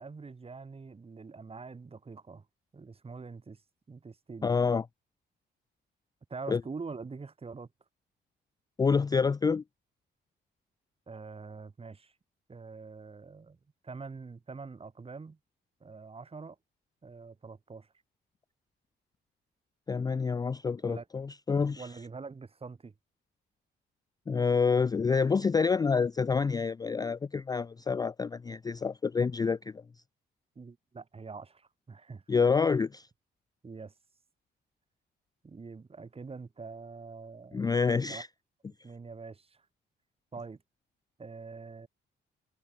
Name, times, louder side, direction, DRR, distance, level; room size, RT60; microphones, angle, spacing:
voice 1, 0.0-2.4 2.7-3.6 3.9-4.5 6.3-7.7 11.1-12.1 12.5-13.6 13.8-15.4 15.8-16.6 17.0-17.9 20.9-21.1 21.8-22.9 30.5-32.2 33.6-33.9 35.4-38.2 38.8-39.6 40.3-40.6 41.2-41.9, right 4 dB, 30° right, 2.9 m, -44 dB
voice 2, 4.4-4.8 6.5-6.6 8.8-9.6 19.9-21.9 24.3-29.8 32.3-33.1 37.5-38.3, left 5 dB, 20° left, 0.3 m, -27 dB
cardioid pair, 90°, 20 cm